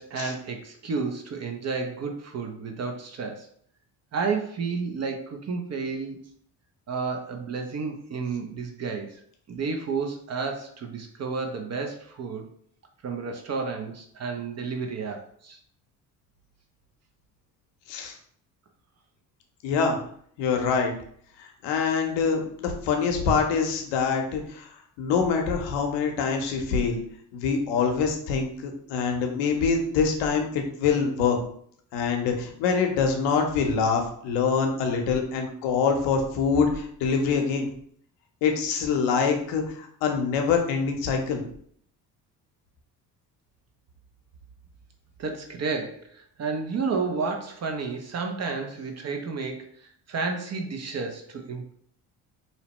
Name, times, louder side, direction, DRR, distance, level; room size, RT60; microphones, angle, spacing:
voice 1, 0.0-3.5 4.1-6.2 6.9-9.2 9.5-12.5 13.0-15.6 45.2-51.7, right 4 dB, 40° right, 4 dB, 0.5 m, -31 dB
voice 2, 19.6-20.0 20.4-20.9 21.4-24.7 25.0-27.0 27.3-31.4 31.9-37.7 38.4-41.4, left 5 dB, 80° left, 3 dB, 0.7 m, -25 dB
2.8 x 2.0 x 2.9 m, 0.63 s
supercardioid pair, 70°, 42 cm